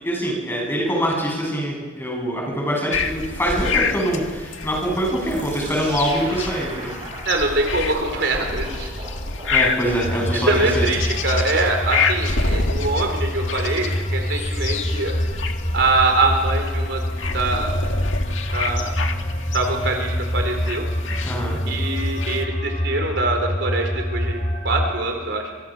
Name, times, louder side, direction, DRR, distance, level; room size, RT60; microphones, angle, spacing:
voice 1, 0.0-6.9 9.5-10.9 21.2-21.6, equal, 10° left, -1 dB, 7.8 m, -24 dB
sound 1, 2.9-22.4, left 4 dB, 90° left, 1.8 m, -28 dB
sound 2, 5.3-10.6, right 2 dB, 25° right, 6.6 m, -39 dB
voice 2, 7.3-8.9 10.5-15.1 15.7-17.0 17.3-17.8 18.5-19.0 19.5-20.9 21.7-24.4 24.6-25.4, right 2 dB, 65° right, 3 dB, 4.3 m, -23 dB
sound 3, 10.0-25.0, equal, 35° left, 2.5 m, -26 dB
25.5 x 23.5 x 6.3 m, 1.4 s
head